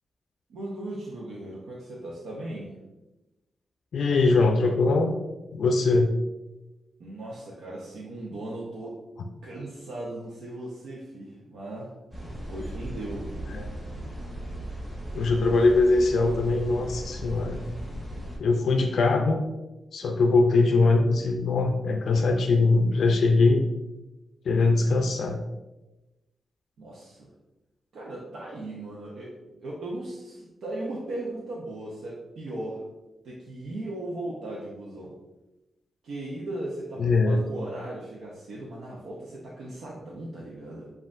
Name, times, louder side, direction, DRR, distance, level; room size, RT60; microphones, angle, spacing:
voice 1, 0.5-2.7 7.0-9.0 9.4-11.9 12.5-13.3 26.8-27.3 27.9-32.8 33.2-35.1 36.0-40.9, right 1 dB, 80° right, -5 dB, 0.8 m, -37 dB
voice 2, 3.9-5.1 5.5-6.1 13.5-13.7 15.1-17.6 18.4-19.5 19.9-23.7 24.5-25.4 37.0-37.4, left 3 dB, 60° left, 4 dB, 0.4 m, -22 dB
sound 1, 12.1-18.4, right 1 dB, 10° right, 1.2 m, -37 dB
7.3 x 2.5 x 2.5 m, 1.0 s
wide cardioid pair, 170°, 0 cm